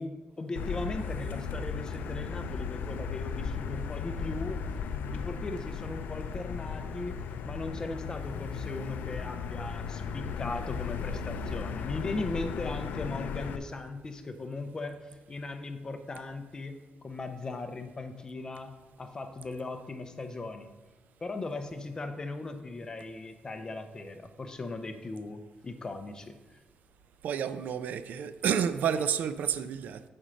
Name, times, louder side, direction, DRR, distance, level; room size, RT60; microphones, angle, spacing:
voice 1, 0.0-4.6 5.1-16.8 17.0-18.7 19.0-20.7 21.2-26.3, left 2 dB, 25° left, 7 dB, 0.5 m, -38 dB
Motor vehicle (road), 0.6-13.6, left 6 dB, 85° left, 0.4 m, -36 dB
voice 2, 27.2-30.0, right 8 dB, 70° right, 13 dB, 0.3 m, -30 dB
6.1 x 4.3 x 5.1 m, 1.1 s
wide cardioid pair, 160°, 3 cm